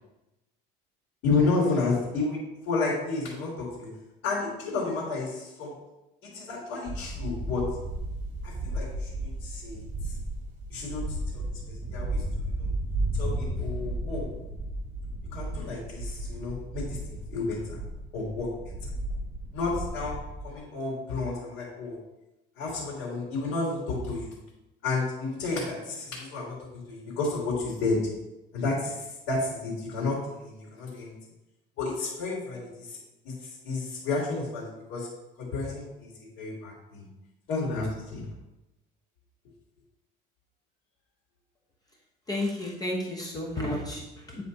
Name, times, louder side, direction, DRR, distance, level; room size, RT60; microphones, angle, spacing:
voice 1, 1.2-3.9 4.2-5.7 6.2-7.7 8.4-9.8 10.7-11.4 11.9-12.7 13.2-14.3 15.3-17.8 18.1-18.5 19.5-22.0 22.6-24.4 24.8-28.0 28.5-31.1 31.8-33.0 33.2-35.1 35.4-37.1 37.5-38.2, left 3 dB, 85° left, -6 dB, 3.0 m, -31 dB
sound 1, 6.9-20.5, right 1 dB, 40° right, 2.2 m, -34 dB
voice 2, 42.3-44.4, left 1 dB, 20° left, -1 dB, 1.2 m, -32 dB
9.9 x 4.3 x 4.2 m, 0.95 s
cardioid pair, 135°, 19 cm